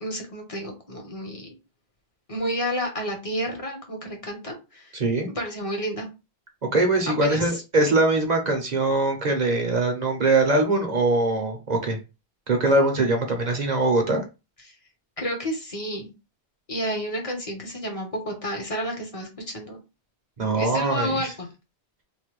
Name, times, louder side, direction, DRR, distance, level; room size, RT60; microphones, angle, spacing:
voice 1, 0.0-1.5 2.3-4.9 5.3-6.1 7.1-7.6 14.6-14.7 15.2-16.1 16.7-19.8 20.5-21.5, equal, 35° left, 2 dB, 0.9 m, -30 dB
voice 2, 4.9-5.3 6.7-12.0 12.5-14.2 20.4-21.3, right 2 dB, 50° right, 3 dB, 0.7 m, -22 dB
3.1 x 2.1 x 3.0 m, 0.28 s
omnidirectional pair, 1.1 m